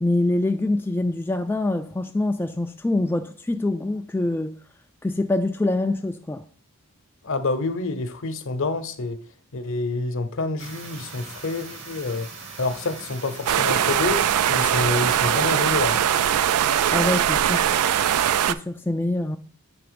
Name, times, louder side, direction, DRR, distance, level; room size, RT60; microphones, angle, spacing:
voice 1, 0.0-4.5 5.0-6.4 16.9-17.7 18.5-19.4, left 2 dB, 10° left, 0.3 m, -25 dB
voice 2, 7.2-9.2 9.5-12.3 12.6-16.0, left 3 dB, 60° left, 0.8 m, -27 dB
sound 1, 10.6-15.7, right 4 dB, 60° right, 1.5 m, -40 dB
sound 2, 13.5-18.5, right 10 dB, 85° right, 0.4 m, -21 dB
8.0 x 3.4 x 5.1 m
head